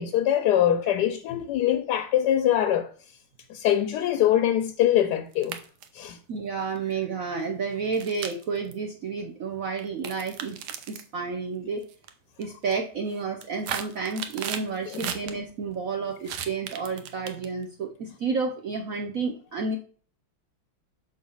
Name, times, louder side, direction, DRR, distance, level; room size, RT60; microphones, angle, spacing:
voice 1, 0.0-2.9 3.5-5.6 5.9-6.2 14.9-15.1, left 11 dB, 70° left, 1.0 m, -23 dB
sound 1, 5.3-6.0 6.8-6.9 7.9-8.7 9.8-11.1 11.8-12.1 12.4-12.8 13.2-15.3 16.2-17.6, right 9 dB, 90° right, 1.6 m, -35 dB
voice 2, 6.3-10.6 10.9-11.9 12.4-19.8, right 4 dB, 65° right, 0.8 m, -31 dB
6.6 x 3.9 x 5.4 m
omnidirectional pair, 2.2 m